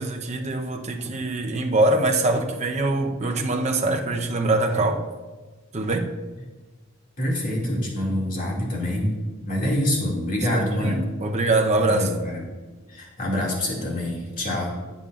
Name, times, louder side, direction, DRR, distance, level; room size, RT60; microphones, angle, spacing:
voice 1, 0.0-5.0 5.7-6.1 10.5-12.1, right 2 dB, 35° right, 0.8 m, -23 dB
voice 2, 7.2-9.1 9.4-11.0 11.8-12.4 12.9-14.8, left 1 dB, 40° left, 2.2 m, -26 dB
15.0 x 7.1 x 2.4 m
head